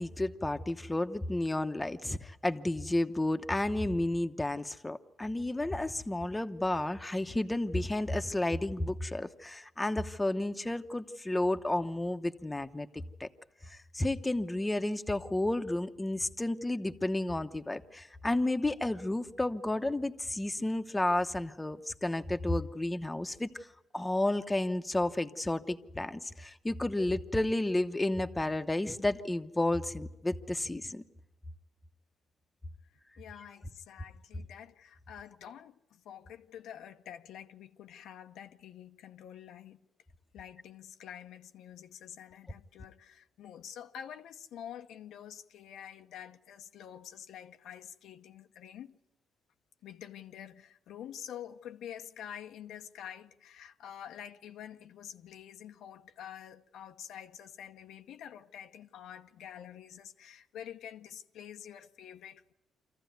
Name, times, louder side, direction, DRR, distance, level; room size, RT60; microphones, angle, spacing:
voice 1, 0.0-13.3 13.7-23.5 23.9-31.0, left 1 dB, 15° left, 0.9 m, -32 dB
voice 2, 33.2-39.8 40.3-48.9 49.8-62.5, left 9 dB, 80° left, 0.8 m, -47 dB
26.0 x 14.5 x 9.4 m
cardioid pair, 90°, 0 cm